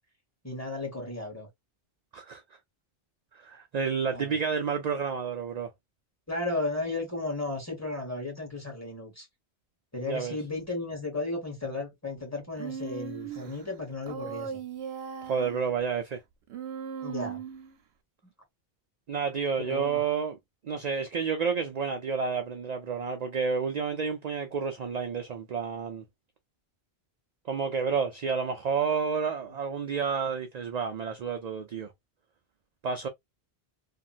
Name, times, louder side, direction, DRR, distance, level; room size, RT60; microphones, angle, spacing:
voice 1, 0.4-1.5 4.1-4.4 6.3-9.3 9.9-14.6 17.0-17.4 18.2-18.3 19.6-20.0, left 2 dB, 15° left, 1.4 m, -34 dB
voice 2, 3.3-5.7 10.1-10.4 15.2-16.2 19.1-20.4 20.7-26.0 27.5-31.9 32.8-33.1, right 6 dB, 50° right, 0.5 m, -30 dB
Human voice, 12.6-13.5 14.1-15.6 16.5-17.8, right 7 dB, 80° right, 0.9 m, -38 dB
2.9 x 2.5 x 2.5 m
omnidirectional pair, 1.1 m